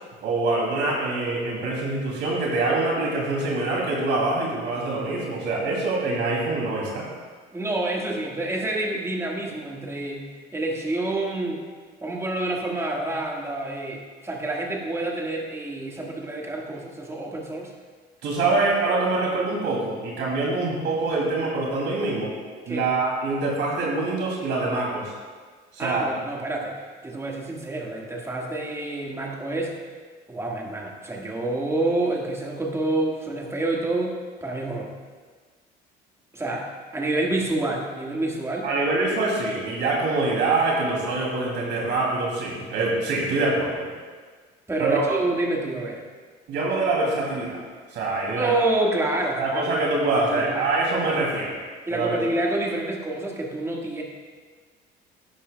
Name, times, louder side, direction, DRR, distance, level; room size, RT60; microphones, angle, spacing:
voice 1, 0.2-7.1 18.2-22.3 22.7-25.1 25.7-26.1 38.6-43.9 44.8-45.2 46.5-47.6 47.9-48.5 49.4-51.6 51.9-52.1, right 3 dB, 60° right, -3 dB, 2.6 m, -25 dB
voice 2, 7.5-11.6 12.0-17.7 22.7-22.9 25.8-29.8 30.3-34.9 36.3-38.7 44.7-46.0 48.4-50.7 51.9-54.0, right 2 dB, 15° right, -1 dB, 1.6 m, -28 dB
12.0 x 9.7 x 2.2 m, 1.5 s
cardioid pair, 105°, 20 cm